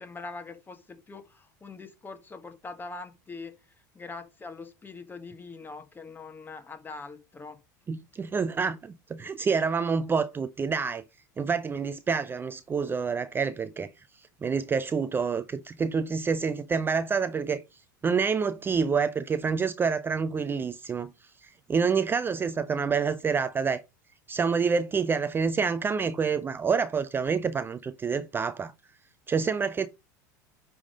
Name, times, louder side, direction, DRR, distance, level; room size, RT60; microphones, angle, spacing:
voice 1, 0.0-3.6 3.9-7.6, left 3 dB, 20° left, 1.7 m, -42 dB
voice 2, 7.9-11.0 11.4-17.6 18.0-21.1 21.4-23.8 24.3-28.7 29.3-29.9, right 5 dB, 20° right, 0.5 m, -27 dB
9.6 x 3.6 x 5.1 m
hypercardioid pair, 85°, 10 cm